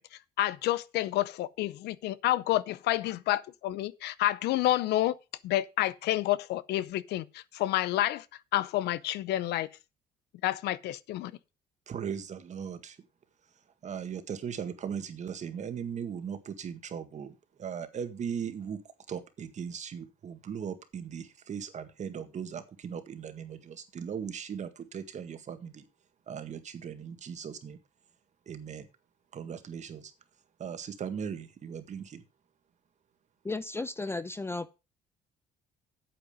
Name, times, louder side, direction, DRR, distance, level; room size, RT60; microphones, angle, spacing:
voice 1, 0.4-5.1 5.4-8.2 8.5-9.7 10.4-11.3, left 15 dB, 80° left, 0.7 m, -29 dB
voice 2, 11.9-13.0 13.8-18.8 19.1-25.8 26.3-27.8 28.5-28.8 29.3-30.1 30.6-32.2, right 7 dB, 45° right, 1.7 m, -38 dB
voice 3, 33.4-34.7, left 3 dB, 15° left, 0.5 m, -34 dB
9.0 x 8.0 x 5.1 m
cardioid pair, 110°, 17 cm